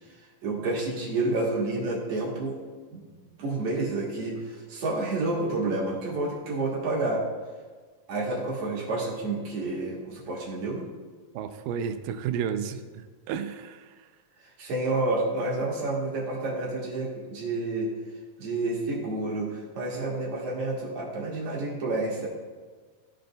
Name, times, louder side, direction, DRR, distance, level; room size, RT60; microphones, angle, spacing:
voice 1, 0.4-2.5 2.9-3.0 3.4-7.2 8.1-10.8 14.6-17.9 18.4-22.3, right 2 dB, 60° right, -4 dB, 2.5 m, -29 dB
voice 2, 11.3-13.9 19.9-20.0, right 8 dB, 85° right, 8 dB, 2.2 m, -32 dB
14.5 x 5.1 x 2.2 m, 1.5 s
omnidirectional pair, 3.8 m